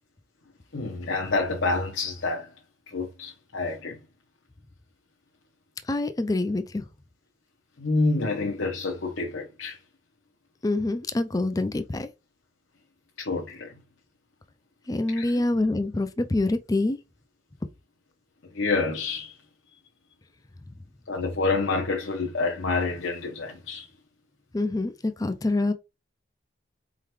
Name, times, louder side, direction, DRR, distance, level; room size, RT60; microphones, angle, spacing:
voice 1, 0.7-2.5 2.9-4.0 7.8-9.8 13.2-13.8 15.2-15.3 18.5-19.4 19.7-19.8 21.1-23.9, left 3 dB, 75° left, 1.0 m, -28 dB
voice 2, 5.8-6.9 10.6-12.1 14.9-17.0 17.6-17.7 24.5-25.7, left 2 dB, 20° left, 0.4 m, -26 dB
4.4 x 3.7 x 3.1 m
head